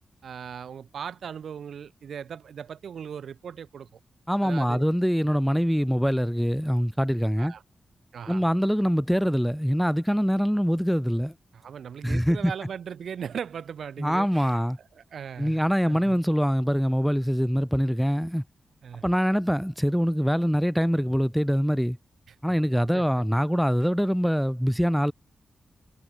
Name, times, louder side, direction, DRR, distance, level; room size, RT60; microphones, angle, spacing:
voice 1, 0.2-3.9 4.4-4.8 7.4-7.6 8.1-8.4 11.5-14.6 15.0-16.2 18.8-19.0 22.3-23.0, right 7 dB, 80° right, 1.7 m, -38 dB
voice 2, 4.3-7.5 8.3-11.3 12.0-12.5 14.0-14.8 15.4-18.4 19.0-22.0 22.4-25.1, equal, ahead, 0.7 m, -24 dB
wide cardioid pair, 145°, 0 cm